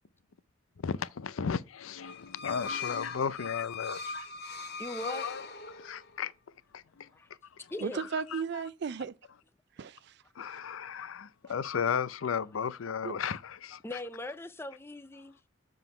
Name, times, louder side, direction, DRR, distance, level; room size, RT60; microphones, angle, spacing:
voice 1, 0.8-4.3 5.0-5.4 5.8-6.3 6.7-7.1 8.3-8.4 10.4-13.8, left 6 dB, 80° left, 0.5 m, -34 dB
sound 1, 2.0-6.2, left 4 dB, 55° left, 1.1 m, -40 dB
voice 2, 4.4-5.3 7.1-7.3 7.7-8.0 11.4-11.6 13.8-15.4, left 1 dB, 10° left, 0.4 m, -41 dB
voice 3, 7.8-9.1 9.8-10.6 13.0-13.1, right 6 dB, 55° right, 0.4 m, -36 dB
7.2 x 3.8 x 5.5 m
head